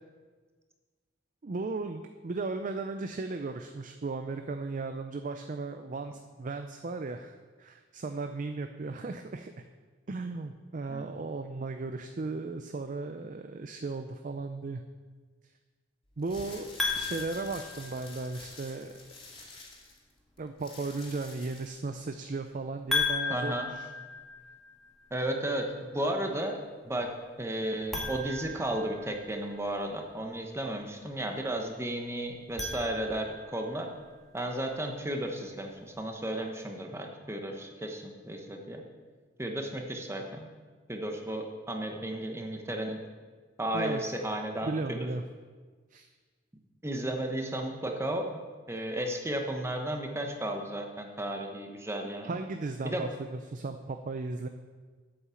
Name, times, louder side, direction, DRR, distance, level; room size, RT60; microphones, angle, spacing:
voice 1, 1.4-9.7 10.1-14.8 16.2-18.9 20.4-23.9 43.7-44.0 44.6-45.2 45.9-46.1 52.2-54.5, right 3 dB, 45° right, 7 dB, 0.5 m, -36 dB
sound 1, 16.1-21.9, left 2 dB, 30° left, 2.6 m, -48 dB
sound 2, 16.8-18.5 22.9-24.9 27.8-29.4 32.3-33.5, left 3 dB, ahead, 1.9 m, -35 dB
voice 2, 23.3-23.7 25.1-26.6 26.8-27.1 27.4-33.9 34.3-38.8 39.4-40.5 40.9-43.0 43.6-45.1 46.8-48.3 48.7-52.4 52.8-53.1, right 1 dB, 15° right, 3 dB, 1.1 m, -34 dB
8.6 x 7.2 x 7.1 m, 1.4 s
head